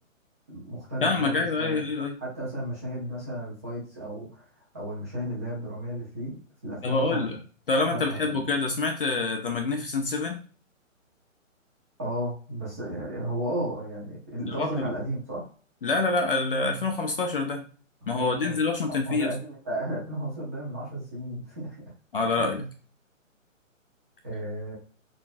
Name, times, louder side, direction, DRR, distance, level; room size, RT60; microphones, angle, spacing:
voice 1, 0.5-1.8 2.2-4.4 4.7-6.4 6.6-7.4 7.9-8.4 12.0-15.5 18.2-21.8 22.4-22.7 24.2-24.7, right 1 dB, 10° right, -7 dB, 0.5 m, -34 dB
voice 2, 1.0-2.2 6.8-7.4 7.7-10.4 14.5-14.9 15.8-17.7 18.1-19.3 22.1-22.6, left 3 dB, 45° left, 4 dB, 0.4 m, -26 dB
3.9 x 2.4 x 2.4 m, 0.39 s
hypercardioid pair, 155°, 40 cm